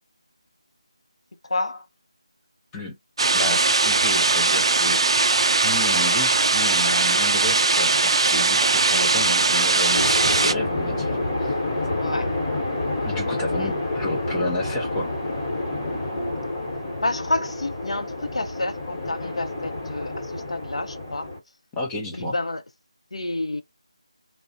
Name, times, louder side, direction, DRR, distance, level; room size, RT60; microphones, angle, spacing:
voice 1, 1.4-1.9 12.0-12.4 13.6-13.7 17.0-21.3 22.1-22.6 23.1-23.6, left 2 dB, 70° left, 0.5 m, -29 dB
sound 1, 3.2-10.5, right 3 dB, 55° right, 0.3 m, -20 dB
voice 2, 3.3-5.0 5.6-11.5 13.1-15.1 21.7-22.4, left 2 dB, 10° left, 0.5 m, -31 dB
sound 2, 9.9-21.4, left 2 dB, 25° left, 1.0 m, -28 dB
2.4 x 2.0 x 2.6 m
figure-of-eight pair, 165°, 3 cm